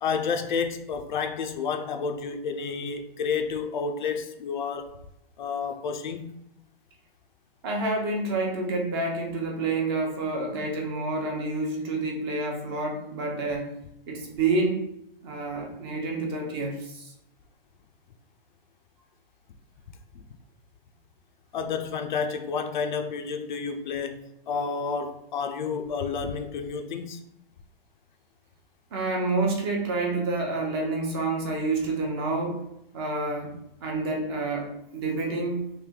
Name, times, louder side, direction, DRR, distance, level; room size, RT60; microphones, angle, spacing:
voice 1, 0.0-4.9 5.4-6.4 21.5-27.3, left 5 dB, 55° left, 0.5 m, -30 dB
voice 2, 7.6-13.7 14.1-14.8 15.2-17.1 28.9-35.7, right 2 dB, 25° right, 0.6 m, -28 dB
3.3 x 2.6 x 3.6 m
hypercardioid pair, 155°, 29 cm